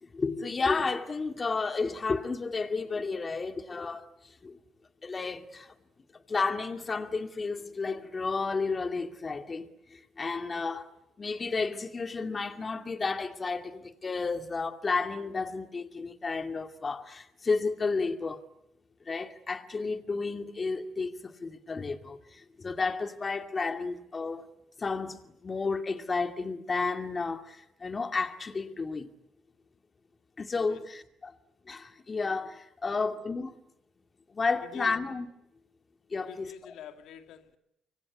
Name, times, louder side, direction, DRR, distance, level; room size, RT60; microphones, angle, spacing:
voice 1, 0.0-4.6 5.0-5.7 6.3-10.9 11.2-18.4 19.1-24.5 24.8-29.1 30.4-31.3 31.7-33.6 34.3-35.3 36.1-36.5, left 4 dB, 35° left, 2.4 m, -32 dB
voice 2, 34.6-35.0 36.2-37.6, left 10 dB, 85° left, 2.1 m, -46 dB
25.5 x 24.0 x 9.7 m
cardioid pair, 90°, 0 cm